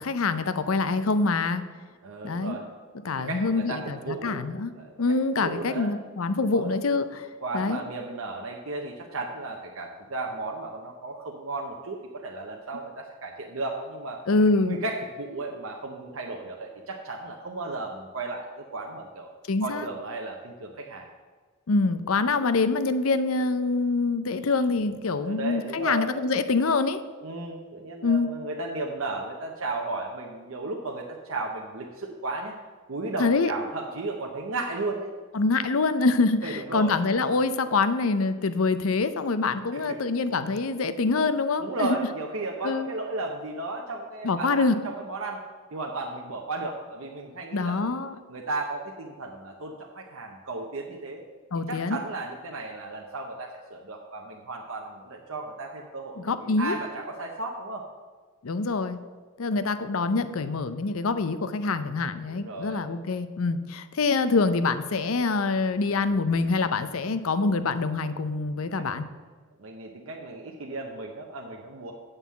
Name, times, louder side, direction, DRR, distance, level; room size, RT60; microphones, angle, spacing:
voice 1, 0.0-1.6 2.2-2.6 3.0-4.7 5.0-7.3 7.5-7.8 14.3-14.8 19.5-19.9 21.7-27.0 28.0-28.3 33.2-33.5 35.3-42.0 42.6-42.9 44.2-44.7 47.5-48.2 51.5-52.0 56.2-56.8 58.4-59.0 59.4-69.1, left 3 dB, 70° left, 12 dB, 0.6 m, -25 dB
voice 2, 2.0-2.7 3.3-4.4 4.8-5.0 5.4-5.9 6.5-6.7 7.4-14.2 14.6-19.3 19.6-21.1 25.2-26.1 27.2-32.6 32.9-35.1 36.4-37.0 39.7-40.0 41.6-45.4 45.7-47.9 48.3-51.2 51.7-57.9 62.3-62.8 68.8-68.9 69.6-71.9, right 2 dB, 70° right, 1 dB, 0.8 m, -34 dB
8.0 x 5.6 x 7.2 m, 1.4 s
head